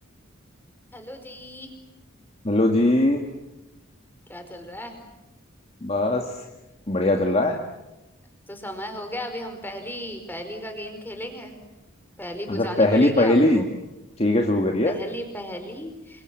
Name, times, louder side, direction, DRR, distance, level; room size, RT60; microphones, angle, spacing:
voice 1, 0.9-1.7 4.3-4.9 8.5-11.6 12.2-13.7 14.8-16.2, equal, 10° left, 6 dB, 5.1 m, -35 dB
voice 2, 2.4-3.2 5.8-6.2 6.9-7.6 12.5-13.7 14.2-15.0, left 1 dB, 30° left, 2 dB, 2.2 m, -20 dB
28.5 x 25.5 x 7.9 m, 0.94 s
head